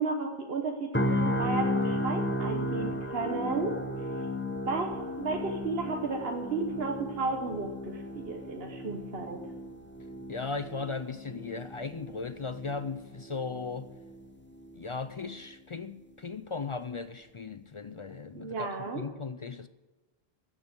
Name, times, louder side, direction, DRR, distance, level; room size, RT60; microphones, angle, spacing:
voice 1, 0.0-4.1 4.7-9.4 18.3-19.0, right 4 dB, 75° right, 1.3 m, -33 dB
sound 1, 0.9-14.9 15.3-15.5, left 1 dB, 10° left, 0.8 m, -34 dB
voice 2, 10.3-13.9 14.8-19.7, left 4 dB, 45° left, 0.4 m, -37 dB
15.0 x 7.4 x 8.1 m
omnidirectional pair, 1.0 m